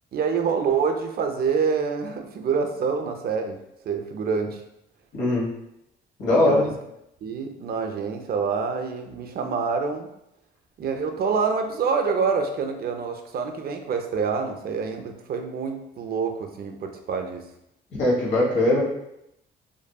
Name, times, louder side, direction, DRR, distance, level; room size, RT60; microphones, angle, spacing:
voice 1, 0.1-3.6 3.9-4.6 6.3-6.7 7.2-10.1 10.8-17.4, right 5 dB, 50° right, 5 dB, 0.4 m, -26 dB
voice 2, 5.1-5.5 6.2-6.7 18.0-18.8, left 1 dB, 65° left, -5 dB, 1.1 m, -20 dB
2.6 x 2.5 x 2.3 m, 0.81 s
cardioid pair, 90°, 20 cm